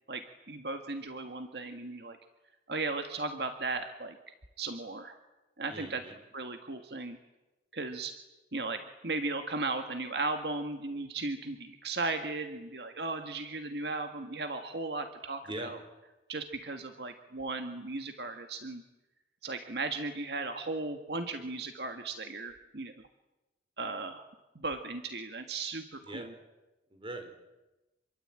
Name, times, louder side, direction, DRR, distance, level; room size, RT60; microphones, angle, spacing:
voice 1, 0.1-2.2 2.7-4.2 4.6-5.2 5.6-6.0 6.3-7.2 7.7-8.1 8.5-15.8 16.3-18.8 19.4-22.9 23.8-24.2 24.6-26.3, right 3 dB, 65° right, 6 dB, 1.8 m, -36 dB
voice 2, 5.7-6.1 15.4-15.7 26.0-26.3 26.9-27.3, right 1 dB, 30° right, 5 dB, 4.6 m, -41 dB
27.0 x 23.0 x 8.9 m, 1.0 s
head